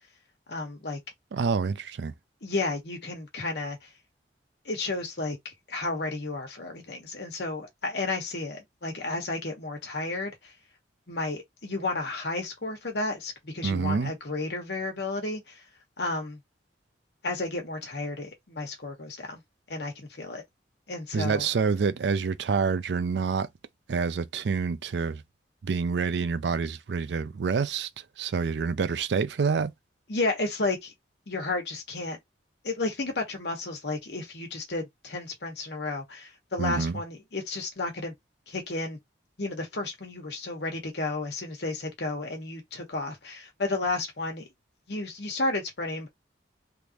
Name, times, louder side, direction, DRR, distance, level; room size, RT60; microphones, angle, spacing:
voice 1, 0.5-1.0 2.4-3.8 4.6-10.3 11.1-15.5 16.0-16.4 17.2-19.4 19.7-20.4 20.9-21.5 30.1-30.9 31.3-32.2 32.6-38.1 38.5-39.0 39.4-44.4 44.9-46.1, left 2 dB, 65° left, 1.3 m, -32 dB
voice 2, 1.3-2.1 13.6-14.1 21.1-23.5 23.9-25.2 25.6-27.9 28.2-29.7 36.6-37.0, right 5 dB, 70° right, 0.4 m, -27 dB
3.4 x 2.5 x 2.8 m
head